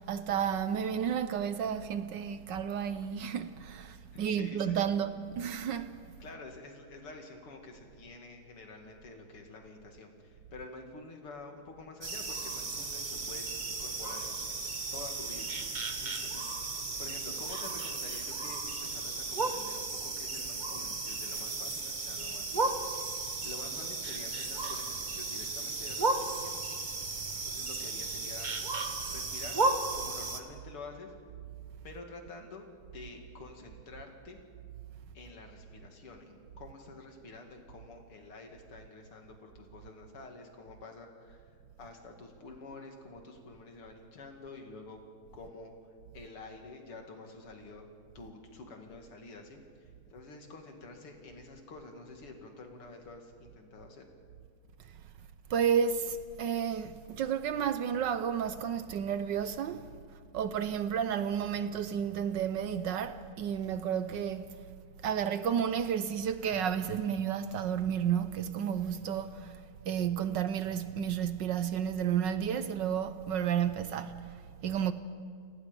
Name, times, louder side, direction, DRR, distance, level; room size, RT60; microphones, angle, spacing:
voice 1, 0.0-6.0 55.5-59.9 60.3-64.5 65.0-69.6 69.9-74.9, right 8 dB, 65° right, 1.2 m, -32 dB
voice 2, 4.1-5.0 6.2-14.4 14.9-22.9 23.4-26.8 27.4-28.5 29.0-29.6 29.9-31.1 31.8-32.7 32.9-34.4 35.1-45.0 45.3-54.1, left 3 dB, 85° left, 3.3 m, -49 dB
sound 1, 12.0-30.4, right 3 dB, 30° right, 1.0 m, -35 dB
30.0 x 18.5 x 5.3 m
omnidirectional pair, 2.4 m